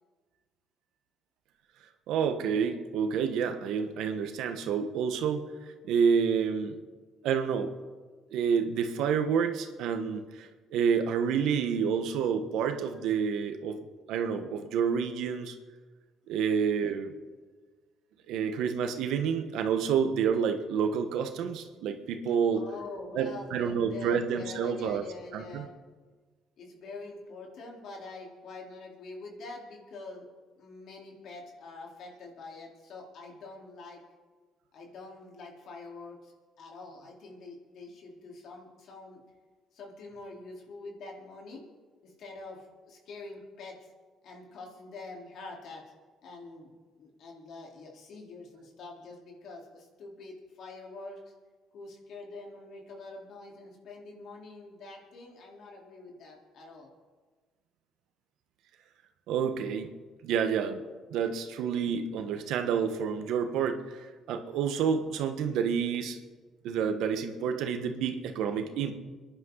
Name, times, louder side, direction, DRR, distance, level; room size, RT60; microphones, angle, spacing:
voice 1, 2.1-6.8 7.2-7.7 8.3-13.8 14.1-15.6 16.3-17.1 18.3-22.7 23.1-25.0 25.3-25.7 59.3-59.9 60.2-60.8 61.1-66.2 66.6-69.0, right 7 dB, 80° right, 7 dB, 1.3 m, -29 dB
voice 2, 22.5-25.7 26.6-30.3 30.6-34.0 34.7-39.2 39.7-41.6 42.0-43.9 44.2-45.8 46.2-51.3 51.7-56.9, left 3 dB, 70° left, -1 dB, 3.9 m, -45 dB
26.0 x 11.0 x 4.0 m, 1.4 s
cardioid pair, 90°, 0 cm